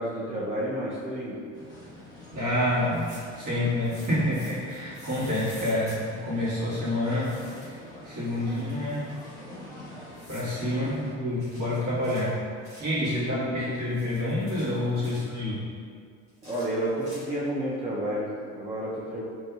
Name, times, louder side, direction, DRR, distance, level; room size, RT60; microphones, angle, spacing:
voice 1, 0.0-1.4 10.6-10.9 12.9-13.7 15.0-15.1 16.4-19.2, right 1 dB, 15° right, -7 dB, 0.5 m, -31 dB
sound 1, 1.5-11.2, left 1 dB, 10° left, 1.0 m, -46 dB
voice 2, 2.3-7.7 8.0-9.1 10.3-12.4 12.8-15.7, left 1 dB, 45° right, -9 dB, 1.4 m, -28 dB
sound 2, 2.9-3.4 3.8-6.0 7.2-7.8 8.1-9.3 10.1-10.5 11.4-13.0 13.7-15.3 16.3-17.5, equal, 85° right, 1.3 m, -49 dB
2.6 x 2.6 x 2.3 m, 2.2 s
hypercardioid pair, 65°, 39 cm